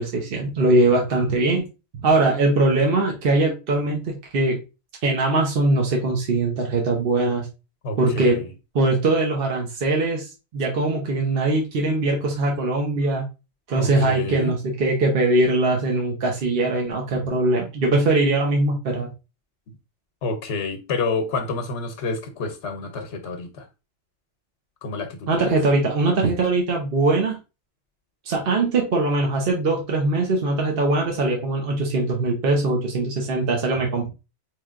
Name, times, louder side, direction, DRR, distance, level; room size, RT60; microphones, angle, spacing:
voice 1, 0.0-1.6 2.0-4.6 5.0-7.5 8.0-8.4 8.7-13.3 13.7-19.1 25.3-27.4 28.3-34.1, right 2 dB, 55° right, 1.0 m, -21 dB
voice 2, 7.8-8.5 13.8-14.5 19.7-19.8 20.2-23.7 24.8-25.5, left 3 dB, 75° left, 1.0 m, -29 dB
4.3 x 3.2 x 2.3 m
omnidirectional pair, 1.2 m